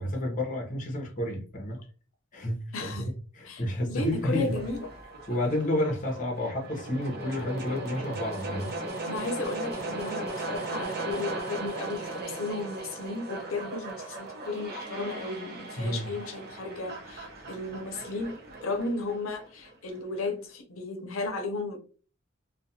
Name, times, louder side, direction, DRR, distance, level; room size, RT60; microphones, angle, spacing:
voice 1, 0.0-1.8 2.3-4.6 5.3-8.7 15.8-16.1, left 1 dB, 40° left, 0.8 m, -30 dB
voice 2, 2.7-3.1 3.5-4.9 9.1-21.8, left 2 dB, 85° left, 0.6 m, -34 dB
sound 1, 4.0-20.0, right 2 dB, 55° right, 0.7 m, -38 dB
2.3 x 2.2 x 2.6 m
head